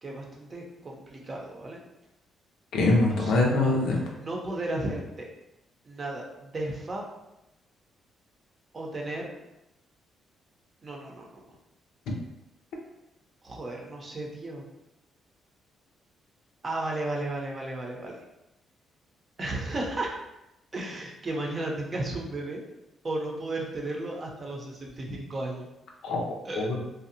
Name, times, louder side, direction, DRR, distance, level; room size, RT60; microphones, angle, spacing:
voice 1, 0.0-1.8 3.0-3.5 4.2-5.3 5.8-7.0 8.7-9.3 10.8-11.6 13.4-14.6 16.6-18.2 19.4-20.2 20.7-22.6 23.0-25.7 26.4-26.7, right 2 dB, 35° right, -1 dB, 0.6 m, -34 dB
voice 2, 2.7-4.1 26.0-26.8, left 2 dB, 85° left, -1 dB, 0.5 m, -24 dB
2.6 x 2.0 x 2.7 m, 0.91 s
cardioid pair, 90°, 0 cm